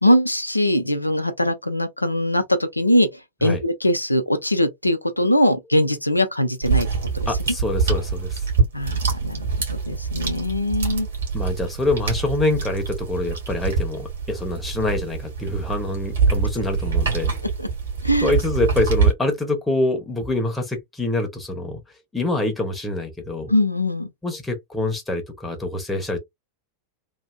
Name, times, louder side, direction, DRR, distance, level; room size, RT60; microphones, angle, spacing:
voice 1, 0.0-3.1 3.4-6.9 7.1-7.3 8.7-11.1 17.6-17.7 18.0-18.3 23.5-24.1, left 1 dB, 85° left, 0.5 m, -21 dB
sound 1, 6.6-19.1, right 5 dB, 65° right, 1.7 m, -25 dB
voice 2, 7.3-8.4 11.3-17.3 18.2-21.8 22.1-23.5 24.2-26.2, left 2 dB, 5° left, 0.9 m, -25 dB
3.1 x 2.6 x 2.2 m
figure-of-eight pair, 90°, 0 cm